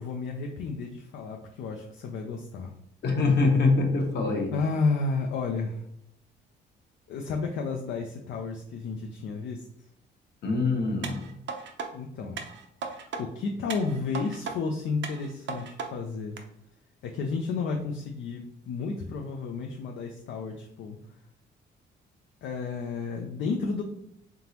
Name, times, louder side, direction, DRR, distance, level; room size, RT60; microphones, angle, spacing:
voice 1, 0.0-2.7 4.5-5.8 7.1-9.6 11.9-12.5 13.2-16.4 17.0-21.0 22.4-23.8, left 4 dB, 75° left, 2 dB, 0.5 m, -32 dB
voice 2, 3.0-4.5 10.4-11.3, left 3 dB, 60° left, 2 dB, 1.1 m, -24 dB
sound 1, 11.0-11.9 12.4-13.2 13.7-14.6 15.0-15.9 16.4-16.5, right 5 dB, 65° right, 0.7 m, -36 dB
3.8 x 3.7 x 2.9 m, 0.74 s
cardioid pair, 90°, 20 cm